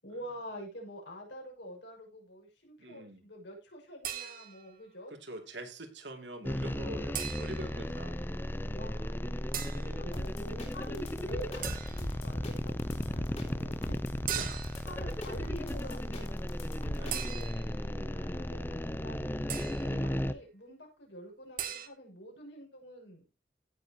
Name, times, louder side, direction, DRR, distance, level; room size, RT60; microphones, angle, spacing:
voice 1, 0.0-5.1 8.7-9.4 9.7-14.0 14.8-16.4 16.9-19.2 19.8-23.2, equal, 75° left, 0 dB, 6.7 m, -47 dB
voice 2, 2.8-3.2 5.1-8.2 9.3-9.9 14.3-14.6 15.4-15.6 16.9-17.3, right 1 dB, 75° right, 5 dB, 2.8 m, -45 dB
sound 1, 4.0-4.7 7.1-7.8 9.5-9.9 11.6-12.2 14.3-14.9 17.1-17.8 19.5-20.0 21.6-21.9, right 10 dB, 50° right, 1.6 m, -39 dB
sound 2, 6.4-20.3, left 1 dB, 10° left, 0.7 m, -35 dB
sound 3, 10.1-17.4, equal, 35° left, 4.0 m, -41 dB
16.5 x 7.5 x 3.0 m, 0.30 s
head